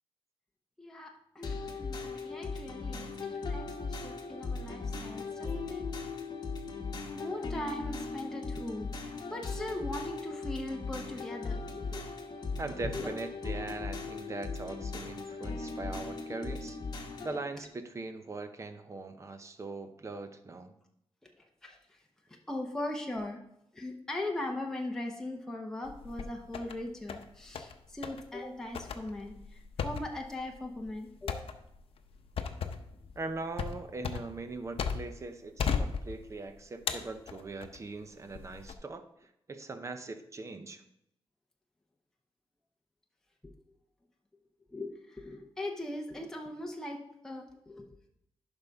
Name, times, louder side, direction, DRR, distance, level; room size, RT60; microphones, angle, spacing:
voice 1, 0.8-5.9 7.1-12.1 12.9-13.1 21.4-22.0 22.5-23.4 23.7-31.4 32.4-32.5 43.4-43.5 44.7-47.9, left 1 dB, 5° left, 0 dB, 0.8 m, -40 dB
sound 1, 1.4-17.4, left 4 dB, 45° left, 1.1 m, -38 dB
voice 2, 12.6-16.8 17.2-20.7 33.2-40.8, right 3 dB, 30° right, 8 dB, 0.7 m, -41 dB
sound 2, 25.8-26.8 27.1-27.7 28.0-28.2 28.7-35.2 35.6-36.4 36.9-37.8 38.3-38.7, left 6 dB, 70° left, 0.7 m, -36 dB
11.0 x 5.3 x 3.6 m, 0.79 s
wide cardioid pair, 145°, 10 cm